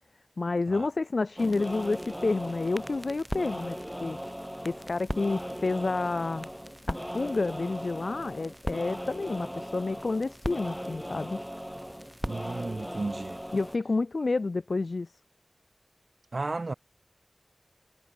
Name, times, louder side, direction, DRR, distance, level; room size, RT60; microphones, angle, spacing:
voice 1, 0.4-4.2 4.6-6.5 6.9-11.4 13.5-15.1, left 3 dB, 75° left, 1.2 m, -29 dB
sound 1, 1.4-13.8, equal, ahead, 0.6 m, -37 dB
voice 2, 12.2-13.4 16.3-16.7, right 3 dB, 65° right, 2.1 m, -33 dB
wide cardioid pair, 45°, 0 cm